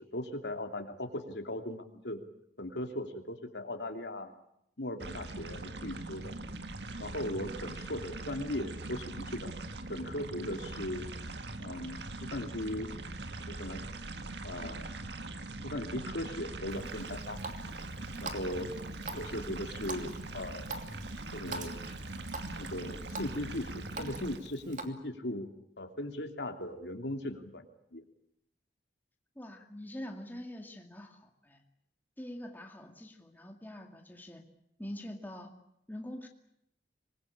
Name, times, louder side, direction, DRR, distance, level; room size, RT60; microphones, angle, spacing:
voice 1, 0.0-2.2 2.6-4.3 4.8-6.3 7.0-9.5 9.9-11.1 11.6-12.9 13.5-13.8 14.4-15.0 15.6-17.4 18.2-20.8 21.3-21.8 22.6-25.5 25.8-27.7 27.9-28.0, left 1 dB, 75° left, 5 dB, 3.0 m, -38 dB
sound 1, 5.0-24.4, right 2 dB, 70° right, 1.8 m, -42 dB
Water tap faucet, 16.7-24.9, right 3 dB, 45° right, 2.8 m, -45 dB
voice 2, 29.4-31.6 32.2-34.4 34.8-35.5 35.9-36.3, left 1 dB, 10° left, 3 dB, 2.3 m, -44 dB
26.0 x 21.0 x 8.8 m, 0.77 s
head